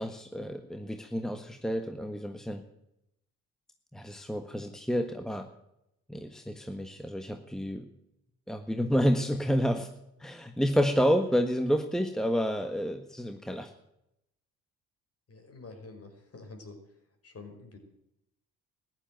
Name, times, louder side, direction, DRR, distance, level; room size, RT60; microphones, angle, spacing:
voice 1, 0.0-2.6 3.9-5.5 6.1-7.9 8.5-9.9 10.2-13.7, equal, ahead, 6 dB, 1.4 m, -29 dB
voice 2, 15.3-16.8 17.2-17.8, left 3 dB, 40° left, 5 dB, 5.2 m, -47 dB
15.0 x 10.5 x 9.1 m, 0.83 s
supercardioid pair, 60°, 37 cm